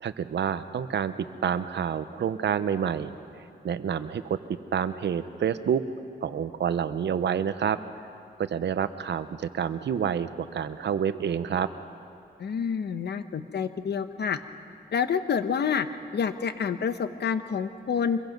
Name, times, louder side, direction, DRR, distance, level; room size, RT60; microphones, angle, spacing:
voice 1, 0.0-3.1 3.6-5.8 6.2-7.8 8.4-11.7, right 8 dB, 80° right, 12 dB, 0.8 m, -28 dB
voice 2, 12.4-14.4 14.9-15.9 16.1-18.2, left 6 dB, 70° left, 10 dB, 1.0 m, -28 dB
25.5 x 22.0 x 5.3 m, 2.7 s
cardioid pair, 90°, 18 cm